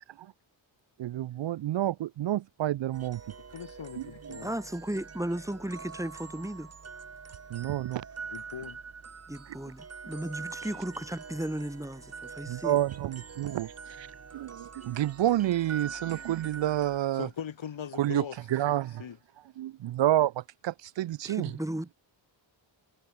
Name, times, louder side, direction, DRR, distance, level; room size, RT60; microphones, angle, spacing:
voice 1, 1.0-3.2 4.0-4.4 7.5-8.0 12.5-14.1 14.3-17.3 18.0-18.2 18.5-19.0 19.6-21.5, right 13 dB, 65° right, 0.6 m, -29 dB
sound 1, 2.9-17.0, right 5 dB, 30° right, 1.8 m, -45 dB
voice 2, 3.5-4.5 8.3-8.8 17.1-18.4 18.7-19.2, left 8 dB, 70° left, 6.3 m, -40 dB
voice 3, 4.4-6.7 9.3-12.8 21.2-21.9, right 1 dB, 5° right, 3.1 m, -35 dB
wide cardioid pair, 155°, 47 cm